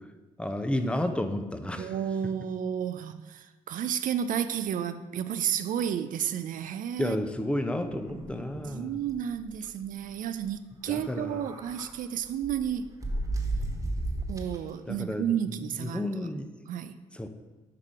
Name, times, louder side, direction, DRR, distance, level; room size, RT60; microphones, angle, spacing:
voice 1, 0.4-2.0 7.0-9.0 10.9-11.4 14.9-16.5 17.1-17.3, left 1 dB, 5° left, 8 dB, 0.7 m, -32 dB
voice 2, 1.8-7.3 8.7-12.9 14.3-16.1 16.7-17.0, right 9 dB, 60° right, 11 dB, 0.4 m, -32 dB
sound 1, 7.7-8.7 9.1-9.2 9.5-9.7 10.9-11.9 12.4-14.7, right 2 dB, 20° right, 1.4 m, -34 dB
5.8 x 4.8 x 4.8 m, 1.2 s
hypercardioid pair, 50°, 16 cm